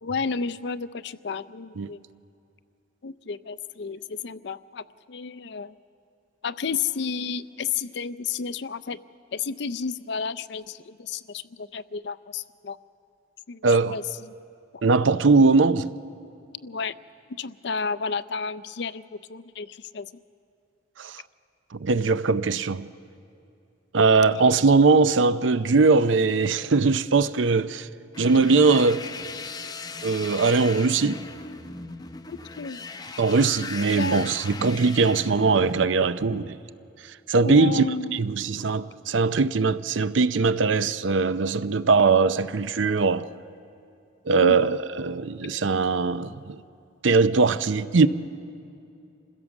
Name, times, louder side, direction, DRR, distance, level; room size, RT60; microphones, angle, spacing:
voice 1, 0.0-2.0 3.0-5.7 6.4-9.0 9.3-12.8 13.5-13.6 13.9-14.3 16.6-16.9 17.4-20.1 24.3-24.5 32.3-32.8 34.0-34.3 37.4-38.2 44.4-44.8 45.4-45.5, left 5 dB, 60° left, 0.5 m, -32 dB
voice 2, 13.6-14.0 14.8-15.9 21.0-21.2 21.7-22.9 23.9-27.9 28.2-29.0 30.0-31.2 33.2-36.6 37.3-37.9 38.1-43.2 44.3-46.6 47.0-48.1, right 4 dB, 80° right, 0.6 m, -21 dB
sound 1, 28.1-35.9, left 4 dB, 20° left, 0.6 m, -38 dB
26.5 x 16.0 x 7.2 m
head